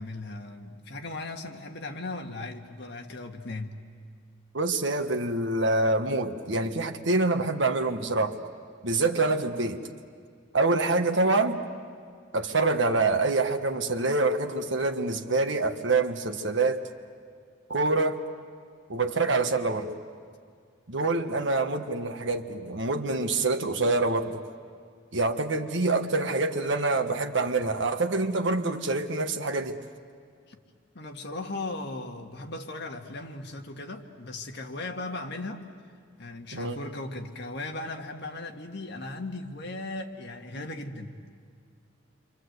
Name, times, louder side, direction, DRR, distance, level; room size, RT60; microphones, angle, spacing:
voice 1, 0.0-3.8 30.5-30.6 30.9-35.7 36.2-41.2, left 2 dB, 55° left, 3 dB, 1.8 m, -37 dB
voice 2, 4.5-8.3 8.8-9.8 10.5-11.6 12.3-16.8 17.7-18.2 18.9-19.9 20.9-24.4 25.1-29.8 36.5-36.8, right 3 dB, 65° right, 7 dB, 1.4 m, -26 dB
28.0 x 25.5 x 8.1 m, 2.1 s
head